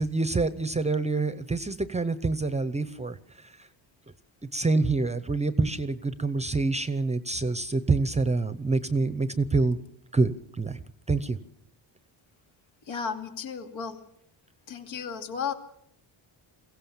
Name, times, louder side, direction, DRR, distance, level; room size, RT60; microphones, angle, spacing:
voice 1, 0.0-3.2 4.5-9.8 10.1-10.8 11.1-11.4, right 3 dB, 15° right, 13 dB, 0.7 m, -26 dB
voice 2, 12.9-14.0 14.7-15.5, left 6 dB, 70° left, 5 dB, 2.8 m, -34 dB
22.5 x 16.5 x 7.3 m, 0.72 s
cardioid pair, 140°, 47 cm